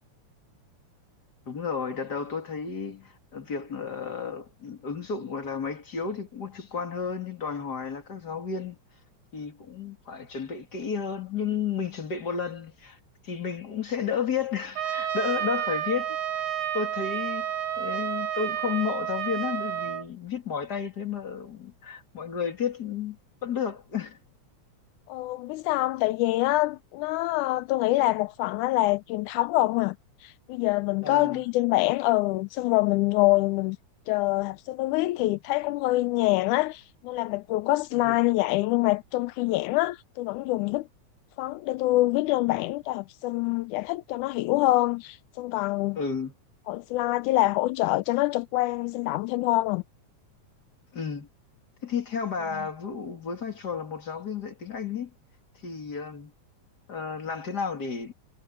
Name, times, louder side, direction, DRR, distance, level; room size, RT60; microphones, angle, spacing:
voice 1, 1.5-8.8 9.3-13.0 13.2-16.4 16.7-17.5 17.8-24.2 31.0-31.4 37.9-38.2 46.0-46.3 50.9-51.3 51.8-55.1 55.6-56.3 56.9-58.1, left 6 dB, 35° left, 3.0 m, -32 dB
Trumpet, 14.7-20.0, right 11 dB, 65° right, 2.2 m, -30 dB
voice 2, 25.1-30.0 30.2-33.8 34.1-40.9 41.4-46.0 46.7-49.8, left 18 dB, 90° left, 2.1 m, -25 dB
omnidirectional pair, 3.4 m